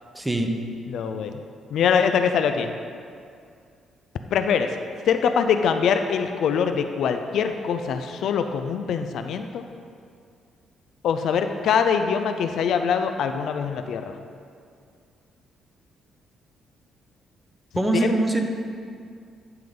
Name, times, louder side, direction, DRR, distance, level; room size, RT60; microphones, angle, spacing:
voice 1, 0.1-0.5 17.8-18.4, right 2 dB, 10° right, 3 dB, 0.8 m, -22 dB
voice 2, 0.9-1.3 1.7-2.7 4.3-4.7 5.1-9.6 11.0-14.0 17.9-18.1, left 7 dB, 75° left, 7 dB, 0.4 m, -23 dB
10.5 x 3.9 x 5.3 m, 2.3 s
cardioid pair, 90°, 0 cm